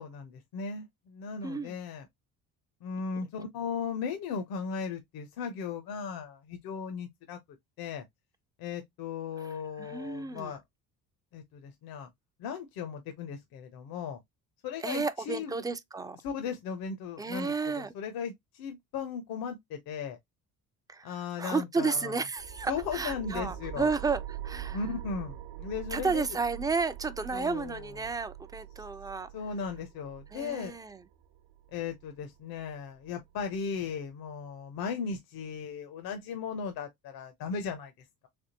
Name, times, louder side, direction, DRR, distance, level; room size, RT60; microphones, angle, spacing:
voice 1, 0.0-2.1 2.8-7.4 7.8-8.0 8.6-10.6 11.3-12.1 12.4-14.2 14.6-15.5 16.2-20.2 21.0-22.1 22.7-23.9 24.7-26.2 27.3-27.9 29.3-30.7 31.7-38.3, left 6 dB, 75° left, 0.8 m, -37 dB
voice 2, 1.4-1.7 9.4-10.5 14.8-16.2 17.2-17.9 20.9-21.1 21.4-24.8 25.9-29.3 30.3-31.0, right 4 dB, 10° right, 0.3 m, -32 dB
sound 1, 22.4-33.4, right 11 dB, 75° right, 0.9 m, -44 dB
3.5 x 3.2 x 2.7 m
cardioid pair, 110°, 36 cm